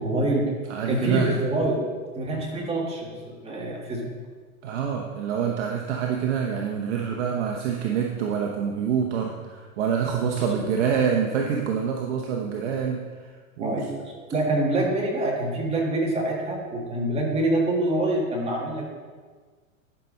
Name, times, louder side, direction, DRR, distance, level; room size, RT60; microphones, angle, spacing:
voice 1, 0.0-0.6 0.9-1.8 2.1-4.1 10.2-10.6 13.6-13.9 14.3-18.8, right 1 dB, 15° right, -2 dB, 1.9 m, -26 dB
voice 2, 0.7-1.3 4.6-13.9, right 7 dB, 55° right, 1 dB, 1.1 m, -26 dB
11.5 x 5.9 x 4.1 m, 1.5 s
hypercardioid pair, 140°, 41 cm